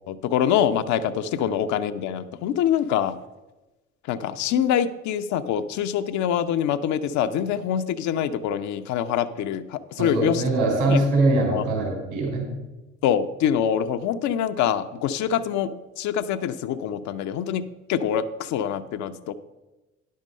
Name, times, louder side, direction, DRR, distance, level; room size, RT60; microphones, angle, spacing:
voice 1, 0.1-3.2 4.0-10.4 10.9-11.1 11.5-11.6 13.0-17.6 17.9-19.3, left 9 dB, 50° left, 10 dB, 0.6 m, -25 dB
voice 2, 10.0-12.5, right 2 dB, 70° right, 0 dB, 4.0 m, -22 dB
10.5 x 6.5 x 5.4 m, 1.1 s
figure-of-eight pair, 55°, 37 cm